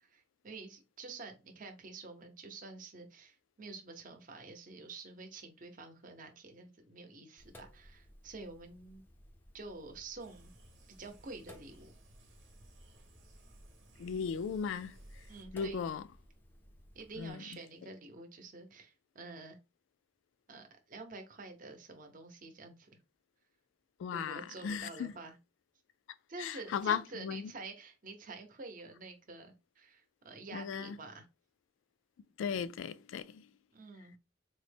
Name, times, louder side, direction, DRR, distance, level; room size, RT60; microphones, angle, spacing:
voice 1, 0.0-9.0 9.5-10.5 11.0-11.9 15.3-15.8 16.9-19.6 20.5-22.9 24.1-25.4 26.3-31.2 33.7-34.2, right 3 dB, 45° right, 0.7 m, -48 dB
Sink (filling or washing), 7.4-17.3, equal, 10° left, 0.4 m, -58 dB
sound 1, 10.2-15.4, right 1 dB, 85° right, 0.8 m, -61 dB
voice 2, 14.0-15.0 15.5-16.0 17.2-17.4 24.0-25.1 26.4-27.5 30.5-31.0 32.4-33.5, left 7 dB, 90° left, 0.3 m, -36 dB
3.8 x 2.1 x 3.3 m
head